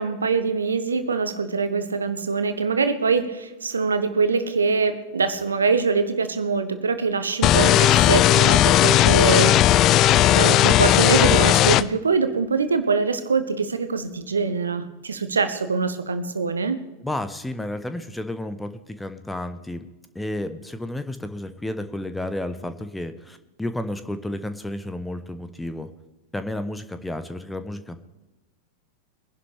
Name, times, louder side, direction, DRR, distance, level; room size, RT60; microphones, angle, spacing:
voice 1, 0.0-9.5 10.3-16.8, right 4 dB, 75° right, 10 dB, 1.2 m, -23 dB
sound 1, 7.4-11.8, left 13 dB, 35° left, 0.5 m, -16 dB
voice 2, 17.0-19.9 20.1-25.9 26.3-28.0, left 1 dB, 5° left, 10 dB, 1.0 m, -32 dB
23.0 x 11.0 x 3.5 m, 1.0 s
figure-of-eight pair, 90°, 0 cm